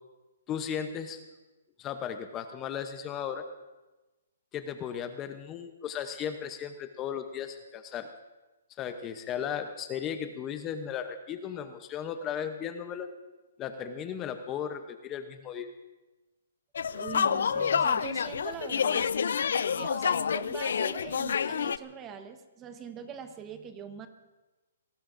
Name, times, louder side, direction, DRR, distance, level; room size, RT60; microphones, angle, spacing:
voice 1, 0.5-1.2 1.8-3.4 4.5-8.1 8.8-13.1 13.6-15.7, left 8 dB, 20° left, 8 dB, 0.7 m, -36 dB
sound 1, 16.7-21.8, left 7 dB, 70° left, 0.5 m, -28 dB
voice 2, 16.9-19.1 19.7-24.1, right 7 dB, 20° right, 8 dB, 1.1 m, -42 dB
27.5 x 18.5 x 2.6 m, 1.1 s
hypercardioid pair, 160°, 0 cm